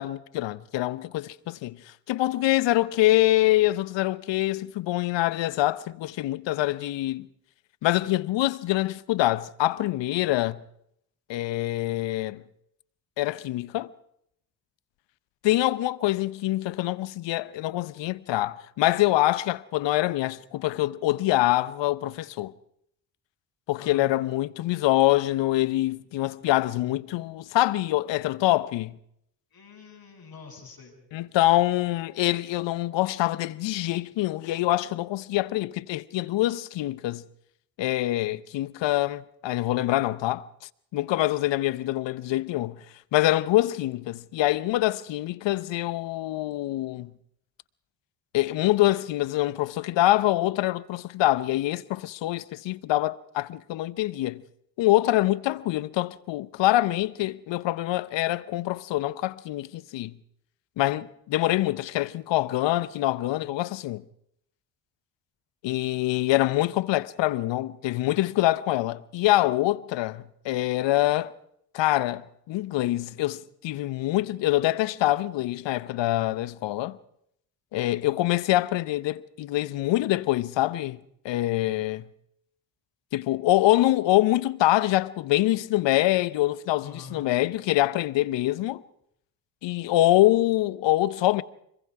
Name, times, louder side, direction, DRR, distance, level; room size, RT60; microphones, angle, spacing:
voice 1, 0.0-1.8 2.1-7.3 7.8-10.6 11.3-12.4 13.2-13.9 15.4-22.5 23.7-28.9 31.1-37.2 37.8-40.4 40.9-42.8 43.1-47.1 48.3-54.4 54.8-60.1 60.8-64.0 65.6-71.3 71.7-77.0 77.7-81.0 81.2-82.0 83.1-88.8 89.6-91.4, left 16 dB, 70° left, 0.9 m, -25 dB
voice 2, 23.8-24.1 29.5-30.9 86.8-87.2, left 4 dB, 50° left, 7.7 m, -45 dB
25.5 x 21.5 x 4.8 m
supercardioid pair, 55°, 45 cm